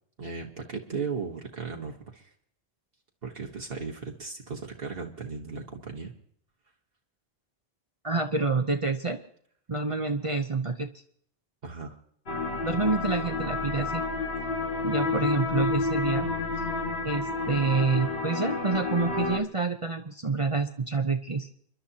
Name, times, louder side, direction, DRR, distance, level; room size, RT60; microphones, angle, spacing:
voice 1, 0.2-2.3 3.2-6.1 11.6-12.0, right 5 dB, 65° right, 1 dB, 1.5 m, -36 dB
voice 2, 8.0-9.2 9.7-10.9 12.6-14.0 14.8-16.3 17.0-21.5, right 4 dB, 35° right, 6 dB, 0.7 m, -28 dB
sound 1, 12.3-19.4, left 3 dB, 70° left, 1.9 m, -30 dB
30.0 x 11.5 x 2.8 m, 0.64 s
omnidirectional pair, 1.0 m